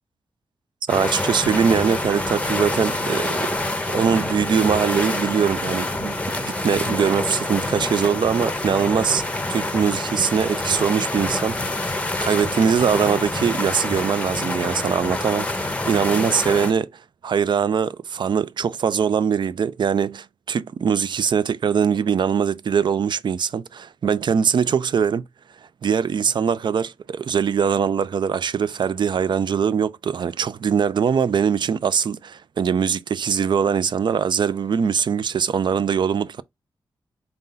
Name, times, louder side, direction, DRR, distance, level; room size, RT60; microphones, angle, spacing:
sound 1, 0.9-16.7, left 2 dB, 15° left, 0.7 m, -26 dB
voice 1, 0.9-3.5 3.9-9.2 9.5-11.6 11.8-16.9 17.2-25.2 25.8-36.4, right 7 dB, 60° right, 0.4 m, -22 dB
3.8 x 2.7 x 3.8 m
cardioid pair, 80°, 9 cm